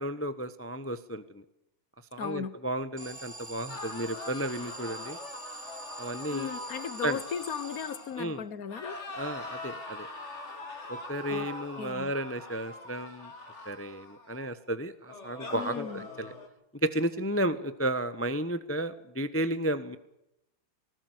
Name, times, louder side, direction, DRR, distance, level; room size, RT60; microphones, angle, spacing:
voice 1, 0.0-1.4 2.1-5.2 6.0-6.5 7.0-7.2 8.2-8.4 9.2-10.1 10.9-13.3 13.7-16.3 16.8-20.0, right 1 dB, 15° left, 12 dB, 0.5 m, -33 dB
voice 2, 2.2-2.5 6.3-9.0 11.3-11.5 11.8-12.1 15.5-16.1 17.4-17.6, left 7 dB, 50° left, 16 dB, 1.4 m, -36 dB
Alarm, 3.0-8.5, right 2 dB, 10° right, 2.1 m, -45 dB
sound 1, 3.7-8.3 8.7-14.5 15.1-16.5, left 2 dB, 35° left, 3.1 m, -43 dB
19.5 x 19.0 x 8.0 m, 0.84 s
omnidirectional pair, 2.2 m